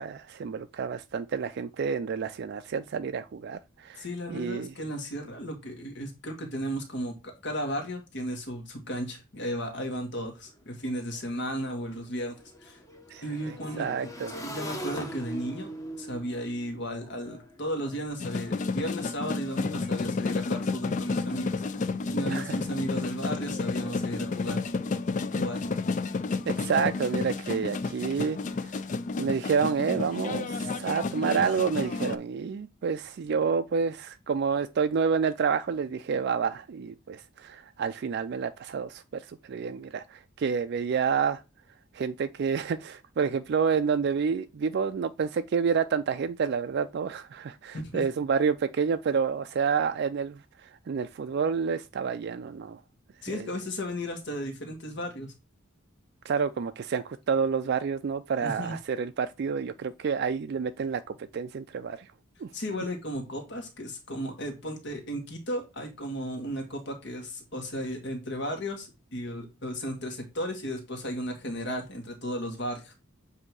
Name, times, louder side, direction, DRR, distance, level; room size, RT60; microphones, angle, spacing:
voice 1, 0.0-4.7 13.1-14.4 22.3-22.6 26.5-28.4 28.6-28.7 29.2-41.4 41.9-52.8 53.3-53.5 56.2-61.0 61.3-62.1 62.4-62.5, right 6 dB, 55° right, 0.3 m, -29 dB
voice 2, 4.0-7.2 7.4-12.3 12.6-12.8 13.2-13.9 14.4-15.7 16.0-21.6 22.1-24.6 25.3-25.6 47.8-48.0 53.2-55.3 58.4-58.8 62.5-72.9, equal, 60° left, 1.6 m, -34 dB
Motorcycle / Engine, 10.5-10.6 10.8-18.0, right 1 dB, 15° left, 0.9 m, -42 dB
sound 1, 18.2-32.2, left 4 dB, 40° left, 0.4 m, -31 dB
7.4 x 2.8 x 4.7 m
head